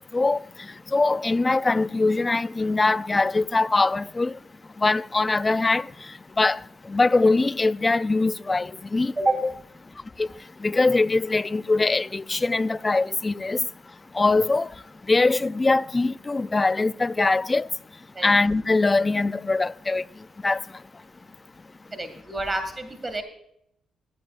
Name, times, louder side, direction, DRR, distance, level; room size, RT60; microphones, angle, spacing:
voice 1, 0.9-4.3 4.8-5.8 6.4-6.6 6.9-9.1 9.4-9.5 10.2-10.3 10.6-13.6 14.2-14.7 15.1-17.7 18.2-20.0 20.4-20.6, left 3 dB, 25° left, 0.3 m, -22 dB
voice 2, 21.9-23.2, right 2 dB, 25° right, 2.0 m, -27 dB
15.5 x 13.0 x 2.5 m
cardioid pair, 90°, 0 cm